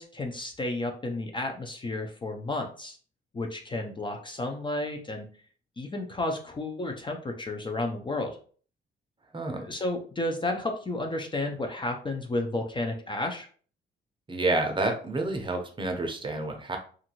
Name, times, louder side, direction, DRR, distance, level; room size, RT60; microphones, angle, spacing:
voice 1, 0.0-3.0 3.3-5.3 5.8-8.4 9.6-13.5, left 2 dB, 25° left, 3 dB, 0.4 m, -32 dB
voice 2, 9.3-9.6 14.3-16.8, right 2 dB, 25° right, 4 dB, 0.6 m, -29 dB
2.6 x 2.5 x 2.9 m, 0.43 s
cardioid pair, 90°, 20 cm